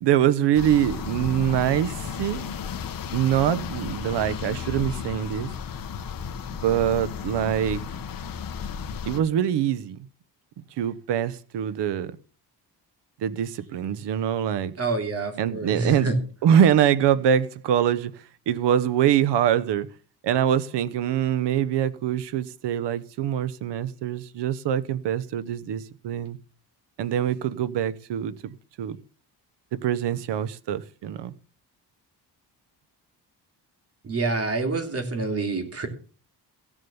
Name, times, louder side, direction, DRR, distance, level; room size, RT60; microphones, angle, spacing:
voice 1, 0.0-2.5 3.1-5.5 6.6-7.8 9.0-10.0 10.8-12.1 13.2-14.7 15.4-16.1 16.4-18.1 18.5-19.9 20.2-26.4 27.0-29.0 29.7-31.3, right 10 dB, 85° right, 1.1 m, -24 dB
sound 1, 0.5-9.2, left 7 dB, 55° left, 1.4 m, -34 dB
voice 2, 14.8-16.2 34.0-35.9, right 3 dB, 35° right, 3.2 m, -27 dB
16.0 x 7.4 x 7.1 m
cardioid pair, 135°, 40 cm